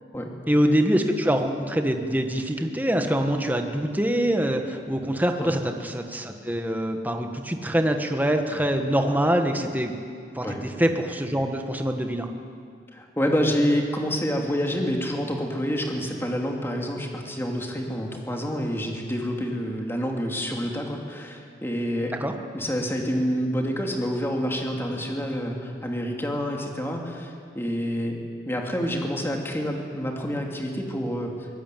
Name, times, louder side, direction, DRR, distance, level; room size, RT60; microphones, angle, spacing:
voice 1, 0.5-10.0 10.3-10.4 10.8-12.3 22.2-22.3, equal, 10° right, 5 dB, 1.6 m, -24 dB
voice 2, 12.9-22.2 22.5-31.5, equal, 15° left, 1 dB, 2.8 m, -28 dB
23.5 x 18.5 x 9.3 m, 2.2 s
head